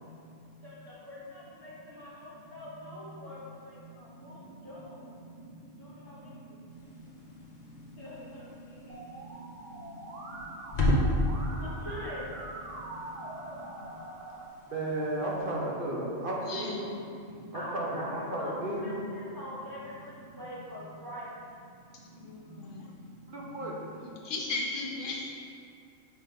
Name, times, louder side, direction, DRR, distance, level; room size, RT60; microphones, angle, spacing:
voice 1, 0.6-5.1 5.8-6.6 8.0-9.2 9.6-9.7 11.5-14.1 17.3-21.3 22.1-22.3, equal, 20° right, -11 dB, 1.1 m, -45 dB
sound 1, 6.7-15.6, left 1 dB, 35° left, 0.9 m, -35 dB
Musical instrument, 8.9-14.5, right 2 dB, 70° right, 1.1 m, -43 dB
voice 2, 14.7-17.0 17.7-19.1 23.3-23.7, right 1 dB, 45° right, -3 dB, 1.0 m, -33 dB
voice 3, 16.4-16.8 22.2-22.9 24.0-25.3, left 3 dB, 75° left, -2 dB, 1.1 m, -36 dB
6.3 x 4.0 x 3.8 m, 2.4 s
omnidirectional pair, 1.3 m